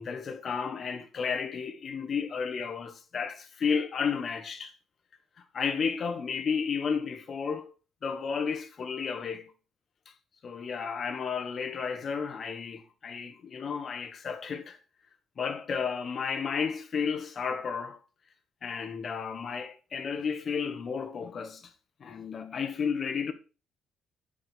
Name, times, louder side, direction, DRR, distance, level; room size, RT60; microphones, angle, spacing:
voice 1, 0.0-4.7 5.5-7.7 8.0-9.5 10.4-14.8 15.4-18.0 18.6-21.7 22.0-23.3, left 6 dB, 40° left, 1.1 m, -32 dB
10.0 x 4.9 x 5.0 m
cardioid pair, 140°, 0 cm